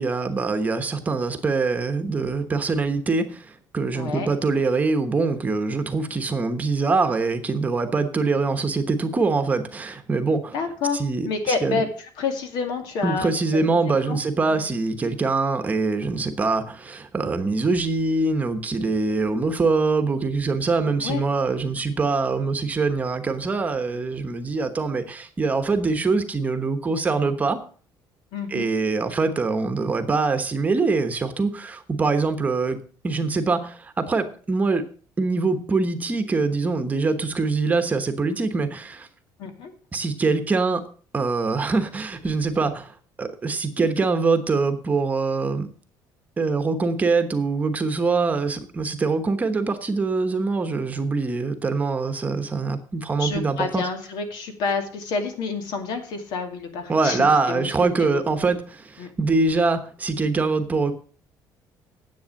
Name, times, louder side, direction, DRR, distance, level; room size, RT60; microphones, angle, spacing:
voice 1, 0.0-10.5 10.9-11.8 13.0-27.6 28.5-34.8 35.2-39.1 39.9-40.8 41.1-45.7 46.4-53.9 56.9-60.9, right 3 dB, 20° right, 8 dB, 1.1 m, -24 dB
voice 2, 3.9-4.3 10.5-13.8 14.1-14.2 14.5-14.6 21.0-21.2 28.3-28.7 39.4-39.7 53.2-57.7 58.0-58.4 59.0-59.1, left 4 dB, 70° left, 6 dB, 2.4 m, -29 dB
10.5 x 8.0 x 6.4 m, 0.42 s
cardioid pair, 160°, 8 cm